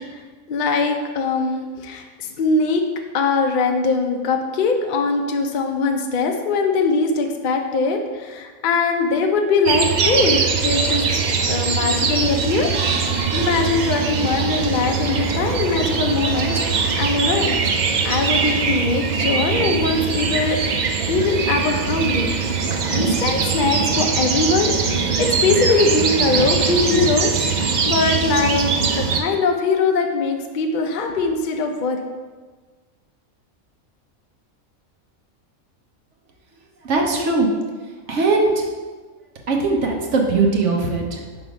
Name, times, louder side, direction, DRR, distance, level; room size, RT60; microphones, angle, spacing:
voice 1, 0.5-2.8 3.1-11.0 11.4-12.7 13.0-20.6 21.1-22.3 22.9-28.7 29.0-32.0, left 4 dB, 50° left, 3 dB, 0.6 m, -21 dB
sound 1, 9.6-29.2, right 5 dB, 85° right, 0.4 m, -21 dB
voice 2, 36.8-37.5 38.1-38.5 39.5-41.2, right 3 dB, 60° right, 1 dB, 1.1 m, -19 dB
5.8 x 3.7 x 5.0 m, 1.4 s
omnidirectional pair, 1.4 m